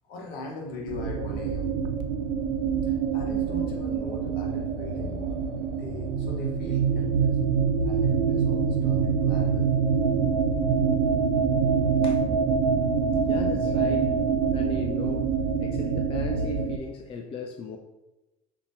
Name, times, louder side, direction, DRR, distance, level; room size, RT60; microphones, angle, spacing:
voice 1, 0.1-1.7 2.8-5.4 5.6-7.3 7.8-9.7, left 2 dB, 55° left, -1 dB, 1.3 m, -39 dB
sound 1, 0.7-15.4, left 3 dB, 80° left, 0.7 m, -43 dB
sound 2, 0.9-16.8, right 6 dB, 65° right, 0.5 m, -25 dB
voice 2, 13.3-14.1 14.5-15.2 15.6-17.8, left 5 dB, 30° left, 3 dB, 0.5 m, -37 dB
6.8 x 2.8 x 2.7 m, 1.0 s
hypercardioid pair, 65°, 19 cm